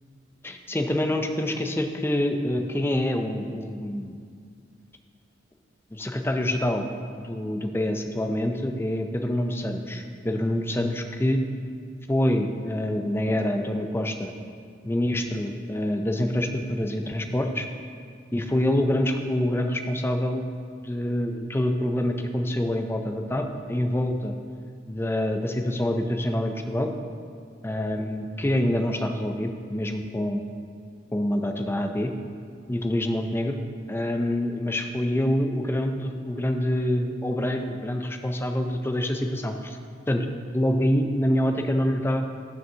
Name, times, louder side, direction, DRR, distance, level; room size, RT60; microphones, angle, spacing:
voice 1, 0.4-4.1 5.9-6.9 7.2-11.4 12.1-14.3 14.8-17.7 18.3-20.4 20.8-24.3 24.9-26.9 27.6-30.4 31.1-32.1 32.7-33.6 33.9-39.8 40.1-40.3 40.5-42.3, left 1 dB, 10° left, 5 dB, 0.4 m, -26 dB
12.0 x 6.9 x 2.8 m, 2.2 s
head